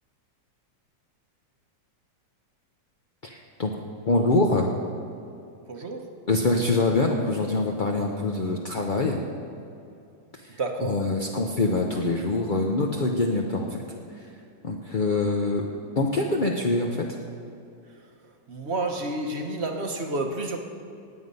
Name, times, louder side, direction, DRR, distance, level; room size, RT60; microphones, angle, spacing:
voice 1, 3.2-3.8 4.1-4.7 6.3-9.2 10.5-13.8 14.6-15.6 16.0-17.0, left 2 dB, 45° left, 0 dB, 0.6 m, -24 dB
voice 2, 5.7-6.1 10.6-11.0 16.3-16.4 18.5-20.6, right 2 dB, 45° right, 4 dB, 1.1 m, -30 dB
19.0 x 7.9 x 5.4 m, 2.6 s
omnidirectional pair, 2.0 m